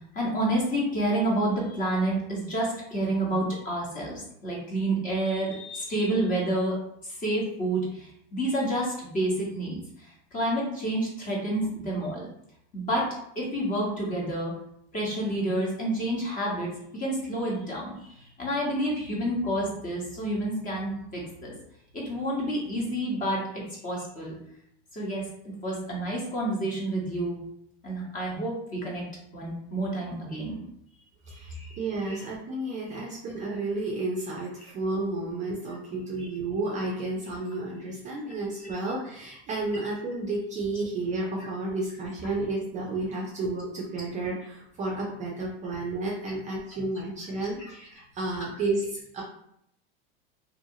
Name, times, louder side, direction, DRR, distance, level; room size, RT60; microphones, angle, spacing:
voice 1, 0.1-12.3 12.7-13.1 13.3-14.5 14.9-21.5 21.9-24.3 24.9-27.4 27.8-29.1 29.3-30.6 31.3-31.8 32.0-32.2 36.1-36.3 38.6-38.7 41.4-41.5, right 1 dB, 25° left, -4 dB, 1.1 m, -29 dB
voice 2, 31.3-49.2, right 2 dB, 25° right, -3 dB, 0.5 m, -32 dB
2.7 x 2.7 x 2.7 m, 0.73 s
supercardioid pair, 130°, 31 cm